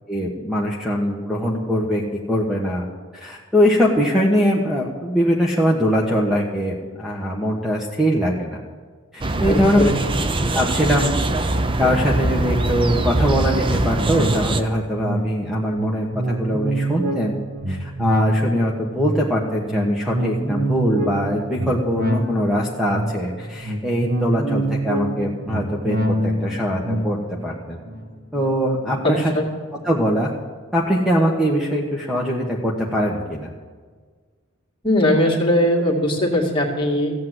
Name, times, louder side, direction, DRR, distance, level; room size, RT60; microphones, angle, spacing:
voice 1, 0.1-2.0 2.3-2.9 3.1-8.6 9.1-9.8 10.5-11.1 11.8-17.4 17.7-26.0 26.2-27.2 27.4-27.8 28.3-29.2 29.8-30.3 30.7-33.5, equal, ahead, -2 dB, 1.2 m, -22 dB
sound 1, 9.2-14.6, right 2 dB, 25° right, 0.6 m, -22 dB
voice 2, 9.5-9.9 29.0-29.5 34.8-37.1, left 1 dB, 25° left, -1 dB, 2.2 m, -19 dB
sound 2, 13.7-29.4 29.8-29.9, right 1 dB, 45° right, 1.7 m, -27 dB
15.0 x 8.6 x 7.8 m, 1.5 s
head